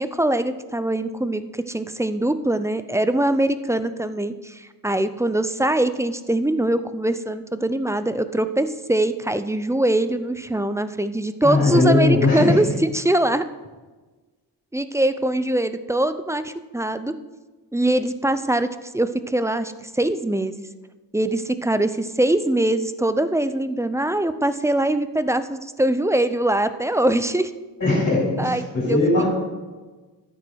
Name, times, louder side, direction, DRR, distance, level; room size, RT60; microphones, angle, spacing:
voice 1, 0.0-12.7 12.9-13.5 14.7-17.2 17.7-18.7 18.9-20.6 21.1-27.5 28.4-29.0, right 1 dB, 10° right, 11 dB, 0.4 m, -22 dB
voice 2, 11.4-12.6 27.8-29.3, left 2 dB, 45° left, -7 dB, 3.6 m, -19 dB
13.0 x 7.8 x 4.6 m, 1.3 s
wide cardioid pair, 140°, 41 cm